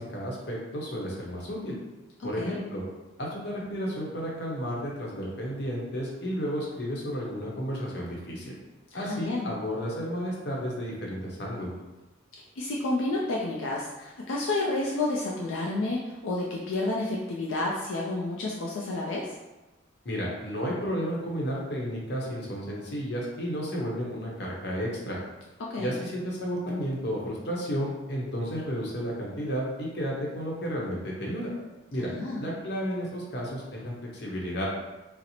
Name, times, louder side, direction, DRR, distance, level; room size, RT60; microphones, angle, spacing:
voice 1, 0.0-1.8 2.2-2.8 3.2-8.5 8.9-11.7 20.0-25.2 25.8-31.5 31.9-32.1 32.4-34.7, equal, 55° left, -3 dB, 0.8 m, -32 dB
voice 2, 2.2-2.6 8.9-9.5 12.6-19.3 25.6-25.9 32.0-32.5, left 2 dB, 80° left, -3 dB, 0.4 m, -30 dB
4.0 x 2.0 x 2.8 m, 1.1 s
head